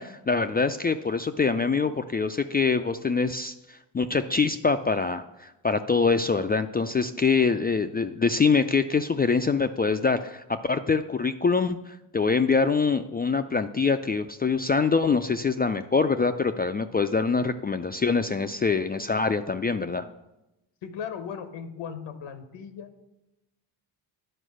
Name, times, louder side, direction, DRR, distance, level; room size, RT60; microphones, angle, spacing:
voice 1, 0.0-20.1, left 4 dB, 20° left, 8 dB, 0.3 m, -24 dB
voice 2, 20.8-22.9, left 7 dB, 85° left, 9 dB, 1.0 m, -37 dB
10.0 x 4.5 x 6.3 m, 0.94 s
supercardioid pair, 60°, 48 cm